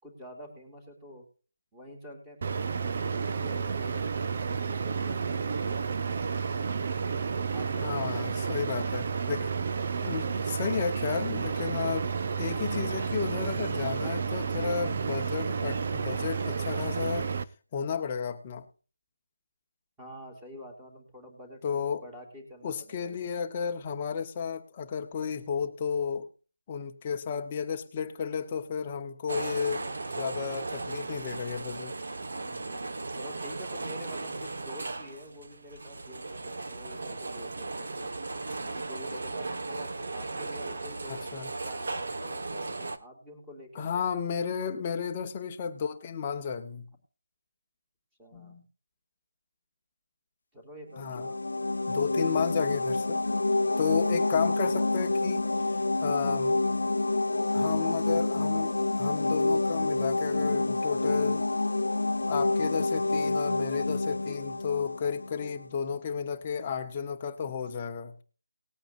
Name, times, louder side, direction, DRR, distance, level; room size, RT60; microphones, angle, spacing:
voice 1, 0.0-1.2 1.7-5.7 7.5-8.4 20.0-23.3 32.4-38.1 38.7-43.9 48.2-48.6 50.5-51.9, equal, 5° right, 0 dB, 2.8 m, -48 dB
sound 1, 2.4-17.4, right 5 dB, 35° right, 0.7 m, -31 dB
voice 2, 7.8-9.5 10.0-12.1 12.4-17.3 17.7-18.6 21.6-22.0 22.6-26.3 26.7-32.0 41.1-41.5 43.7-46.9 48.3-48.6 51.0-51.3 51.8-53.3 53.8-55.5 56.0-56.6 57.5-61.5 62.3-68.2, left 6 dB, 20° left, 5 dB, 1.1 m, -33 dB
sound 2, 29.3-43.0, right 3 dB, 55° right, 1.5 m, -36 dB
sound 3, 51.0-65.6, left 2 dB, 80° left, 0.4 m, -28 dB
19.5 x 8.9 x 2.6 m, 0.37 s
figure-of-eight pair, 175°, 0 cm